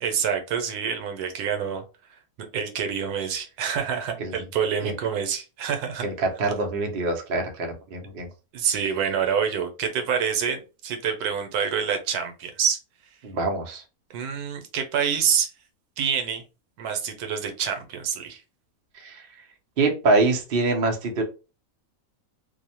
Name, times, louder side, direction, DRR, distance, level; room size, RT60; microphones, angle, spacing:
voice 1, 0.0-1.8 2.5-6.0 8.5-12.8 14.1-15.5 16.0-16.4 16.8-18.4, right 7 dB, 90° right, 6 dB, 1.1 m, -27 dB
voice 2, 6.0-8.3 13.2-13.8 18.9-19.3 19.8-21.2, right 3 dB, 55° right, 2 dB, 0.7 m, -25 dB
2.7 x 2.0 x 2.8 m, 0.31 s
omnidirectional pair, 1.6 m